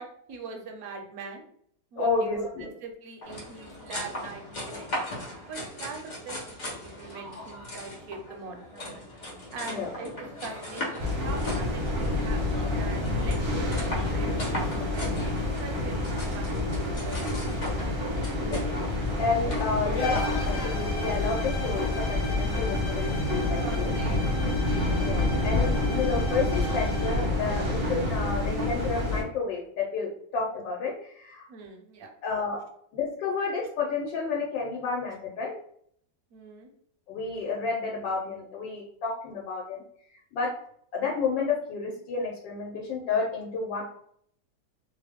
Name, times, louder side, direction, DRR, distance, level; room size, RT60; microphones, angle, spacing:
voice 1, 0.0-1.4 1.9-4.9 5.5-9.0 9.5-11.9 12.2-13.7 14.1-17.5 19.9-20.1 23.6-24.4 31.5-32.1 32.6-32.7 36.3-36.7, right 4 dB, 65° right, 2 dB, 1.0 m, -42 dB
voice 2, 2.0-2.7 9.7-9.9 18.4-18.6 19.2-23.9 25.0-31.4 32.2-32.6 32.9-35.6 37.1-39.8 40.3-40.5 40.9-43.8, left 4 dB, 90° left, -1 dB, 1.3 m, -30 dB
sound 1, 3.2-20.9, left 1 dB, 50° left, 0.5 m, -38 dB
sound 2, 11.0-29.2, left 2 dB, 45° right, 0.8 m, -28 dB
sound 3, 19.9-27.4, left 2 dB, 65° left, 1.0 m, -39 dB
2.9 x 2.1 x 3.4 m, 0.65 s
omnidirectional pair, 1.9 m